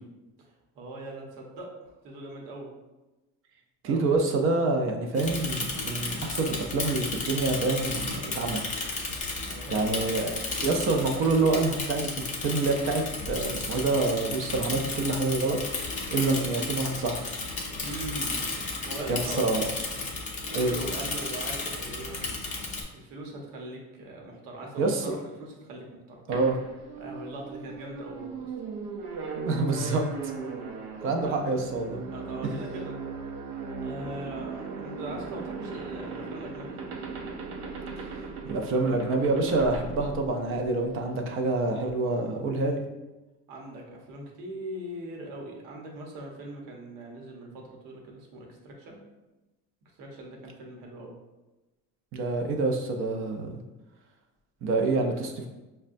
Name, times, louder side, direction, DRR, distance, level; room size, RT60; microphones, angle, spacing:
voice 1, 0.7-2.7 3.8-4.1 9.4-10.3 17.8-18.4 18.8-19.6 20.5-22.3 22.9-26.2 27.0-28.5 31.2-31.3 32.1-32.9 33.8-36.8 43.5-49.0 50.0-51.2 55.0-55.1, right 1 dB, 70° right, 0 dB, 0.9 m, -40 dB
voice 2, 3.8-8.6 9.7-10.3 10.6-15.6 16.1-17.3 19.1-19.7 20.5-20.7 24.8-25.0 26.3-26.6 29.5-30.3 31.0-32.0 38.4-42.8 52.1-53.6 54.6-55.5, right 3 dB, 40° right, 3 dB, 0.5 m, -27 dB
Bicycle / Mechanisms, 5.1-22.8, left 3 dB, 25° left, 0.5 m, -33 dB
sound 1, 26.3-40.9, right 4 dB, 85° right, 0.6 m, -38 dB
5.2 x 2.2 x 2.5 m, 1.1 s
cardioid pair, 150°, 34 cm